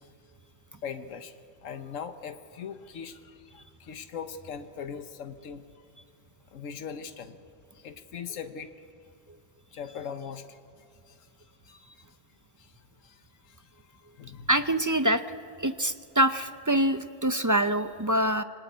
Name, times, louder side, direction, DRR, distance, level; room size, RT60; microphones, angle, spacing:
voice 1, 0.8-1.3 1.6-5.6 6.5-7.4 7.8-8.7 9.7-10.6 14.2-14.5, left 7 dB, 80° left, 9 dB, 1.4 m, -39 dB
voice 2, 14.5-15.2 15.6-18.4, right 1 dB, 25° right, 10 dB, 0.4 m, -25 dB
26.0 x 20.5 x 9.4 m, 2.5 s
omnidirectional pair, 1.3 m